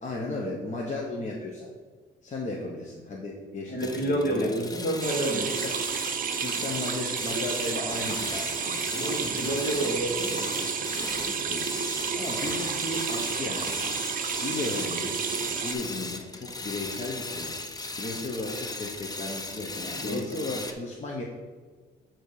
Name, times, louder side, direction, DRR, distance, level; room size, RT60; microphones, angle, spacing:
voice 1, 0.0-1.7 2.2-4.5 5.3-5.8 6.3-9.6 10.6-10.9 11.2-11.7 12.1-14.0 14.4-15.2 15.6-17.6 18.0-21.2, left 2 dB, 35° left, -2 dB, 1.1 m, -35 dB
voice 2, 3.7-5.6 8.9-10.5 19.9-20.6, right 1 dB, 50° left, 1 dB, 1.9 m, -29 dB
sound 1, 3.8-20.7, left 2 dB, 20° left, 0.7 m, -37 dB
sound 2, 5.0-15.7, right 6 dB, 45° right, 0.6 m, -31 dB
9.0 x 3.0 x 4.8 m, 1.5 s
cardioid pair, 90°, 20 cm